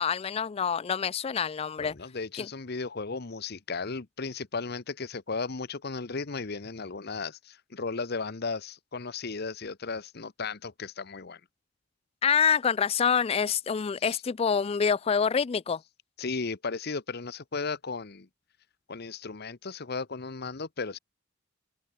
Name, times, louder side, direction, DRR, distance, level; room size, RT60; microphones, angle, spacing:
voice 1, 0.0-1.9 2.4-2.5 12.2-15.8, left 6 dB, 30° left, 0.3 m, -26 dB
voice 2, 1.8-11.4 14.0-14.2 16.2-18.3 18.9-21.0, left 4 dB, 55° left, 1.0 m, -35 dB
head